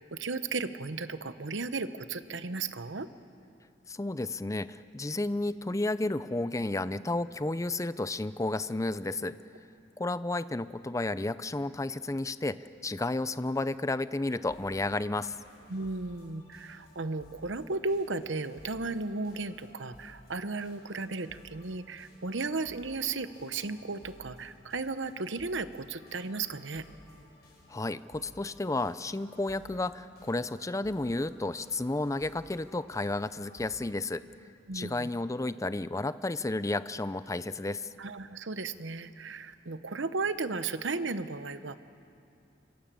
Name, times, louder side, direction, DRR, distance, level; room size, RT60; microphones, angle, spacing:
voice 1, 0.0-3.1 15.7-26.8 34.7-35.1 38.0-41.8, right 3 dB, 70° right, 12 dB, 1.0 m, -35 dB
voice 2, 3.9-9.4 10.0-15.3 27.7-34.2 34.7-37.9, left 2 dB, 15° left, 14 dB, 0.5 m, -32 dB
sound 1, 14.3-33.8, left 1 dB, 55° left, 8.0 m, -57 dB
26.0 x 25.0 x 7.6 m, 2.6 s
head